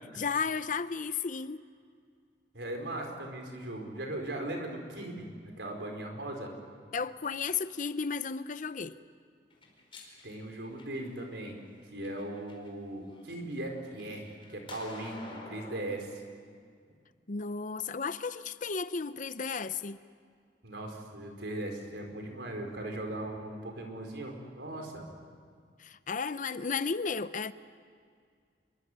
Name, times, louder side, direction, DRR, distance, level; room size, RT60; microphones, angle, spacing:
voice 1, 0.2-1.6 6.9-9.0 17.3-20.0 25.8-27.5, left 5 dB, 45° left, 0.7 m, -33 dB
voice 2, 2.5-6.5 10.2-11.6 11.9-16.2 20.6-25.1, right 1 dB, 75° right, 4.9 m, -39 dB
sound 1, 9.5-11.2 11.8-12.7 13.1-15.8, left 2 dB, 30° left, 4.9 m, -49 dB
27.5 x 23.0 x 8.2 m
head